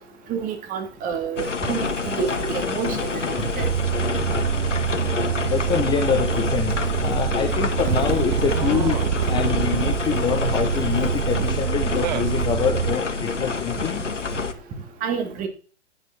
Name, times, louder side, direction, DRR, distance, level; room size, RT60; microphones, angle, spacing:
voice 1, 0.3-3.7 15.0-15.5, right 7 dB, 25° right, 5 dB, 2.6 m, -28 dB
sound 1, 1.4-14.5, left 4 dB, 85° left, 1.7 m, -27 dB
sound 2, 3.6-13.0, right 9 dB, 40° right, 0.7 m, -25 dB
voice 2, 5.5-9.0 9.3-14.0, left 7 dB, 15° left, 5 dB, 0.9 m, -25 dB
10.5 x 9.5 x 6.1 m, 0.41 s
figure-of-eight pair, 125°, 35 cm